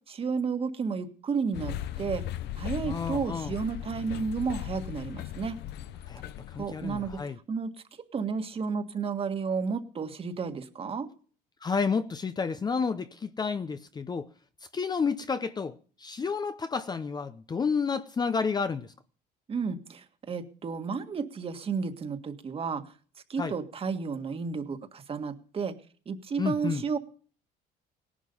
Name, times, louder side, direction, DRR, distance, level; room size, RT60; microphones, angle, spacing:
voice 1, 0.1-2.2 2.6-5.6 6.6-7.2 7.5-7.7 8.1-11.1 19.5-22.8 23.3-25.8 26.0-27.0, right 5 dB, 35° right, 1.7 m, -32 dB
sound 1, 1.5-7.2, left 12 dB, 75° left, 0.8 m, -38 dB
voice 2, 2.8-3.5 6.1-6.2 6.5-7.4 11.6-14.3 14.7-18.9 23.4-23.5 26.4-26.8, left 5 dB, 25° left, 0.7 m, -30 dB
18.5 x 11.0 x 5.4 m
cardioid pair, 135°, 18 cm